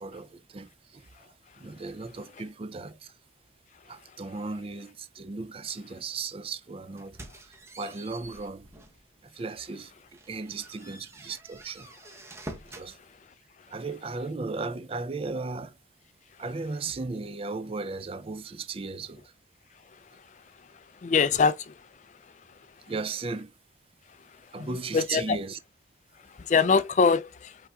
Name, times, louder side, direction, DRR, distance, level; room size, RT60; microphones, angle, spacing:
voice 1, 0.0-3.1 3.9-8.7 9.2-11.9 12.6-13.0 13.7-15.8 16.4-19.3 22.9-23.5 24.5-25.6, right 3 dB, 30° right, 0.4 m, -36 dB
sound 1, 7.0-9.1 9.5-9.6 10.1-12.9, right 1 dB, 15° right, 0.8 m, -46 dB
voice 2, 21.0-21.7 24.6-25.4 26.4-27.6, left 5 dB, 40° left, 0.3 m, -23 dB
5.6 x 3.6 x 2.3 m
head